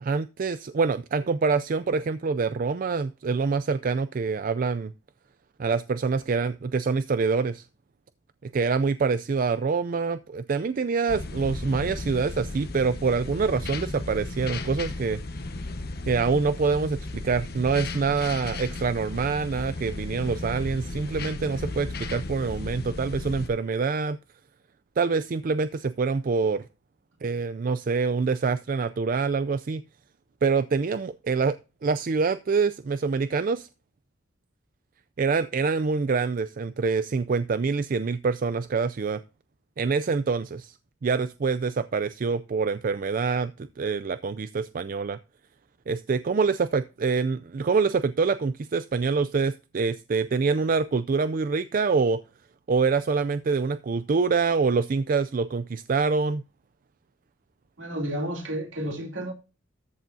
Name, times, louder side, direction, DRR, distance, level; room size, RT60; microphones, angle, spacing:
voice 1, 0.0-4.9 5.6-7.7 8.5-15.2 16.1-24.2 25.0-26.6 27.2-29.8 30.4-33.7 35.2-39.2 39.8-40.7 41.0-45.2 45.9-52.2 52.7-56.4, right 4 dB, 45° right, 0.4 m, -25 dB
sound 1, 11.1-23.5, left 2 dB, 50° left, 1.1 m, -35 dB
voice 2, 57.8-59.3, right 1 dB, 70° right, 2.9 m, -31 dB
13.5 x 7.0 x 2.7 m
head